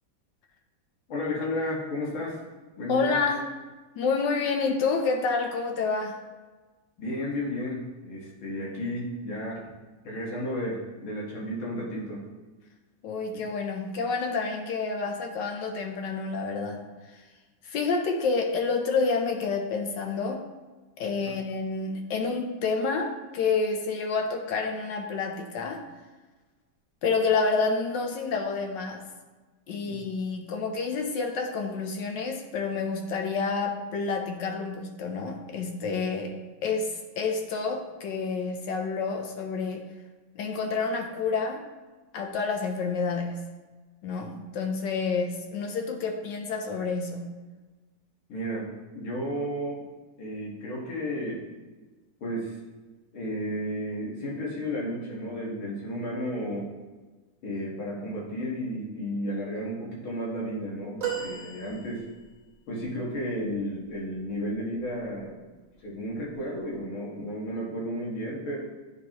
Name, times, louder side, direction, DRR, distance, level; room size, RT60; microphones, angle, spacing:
voice 1, 1.1-2.4 2.8-3.2 7.0-9.7 10.0-12.2 29.9-30.0 48.3-49.8 50.2-51.5 52.2-52.6 53.1-56.7 57.4-62.1 62.7-65.4 65.8-68.6, equal, 90° left, -4 dB, 2.3 m, -33 dB
voice 2, 2.9-3.5 4.0-6.2 13.0-17.2 17.6-20.5 21.0-25.8 27.0-29.0 29.7-36.3 36.6-39.9 40.4-41.6 42.1-43.4 44.0-47.4, left 4 dB, 75° left, 4 dB, 1.2 m, -29 dB
sound 1, 61.0-62.4 64.8-65.0 66.3-66.4, right 8 dB, 40° right, 0.6 m, -35 dB
9.2 x 3.9 x 2.9 m, 1.3 s
omnidirectional pair, 2.2 m